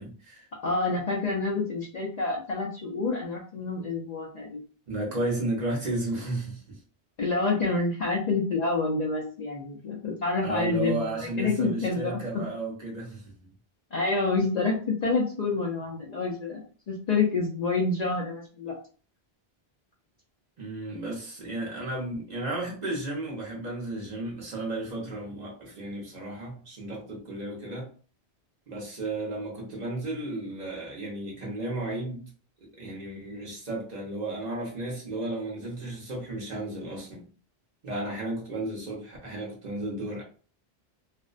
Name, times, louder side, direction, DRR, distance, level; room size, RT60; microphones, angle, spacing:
voice 1, 0.0-0.5 4.9-6.8 10.4-13.5 20.6-27.9 28.7-32.3 32.6-37.3 37.8-40.2, right 2 dB, 45° right, 0.7 m, -33 dB
voice 2, 0.6-4.6 7.2-12.2 13.9-18.7, left 3 dB, 55° left, 0.5 m, -28 dB
2.4 x 2.1 x 2.4 m
omnidirectional pair, 1.0 m